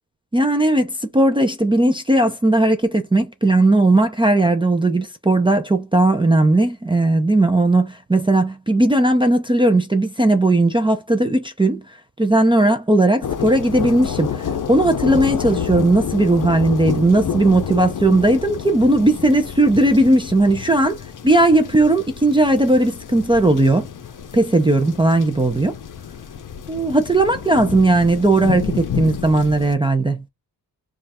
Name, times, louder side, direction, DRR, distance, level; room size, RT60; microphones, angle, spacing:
voice 1, 0.3-11.8 12.2-21.0 21.2-23.9 24.3-25.7 26.7-30.2, right 2 dB, 15° right, 0.5 m, -17 dB
sound 1, 13.2-29.8, left 8 dB, 55° left, 0.7 m, -29 dB
3.2 x 2.4 x 4.1 m
wide cardioid pair, 115°, 37 cm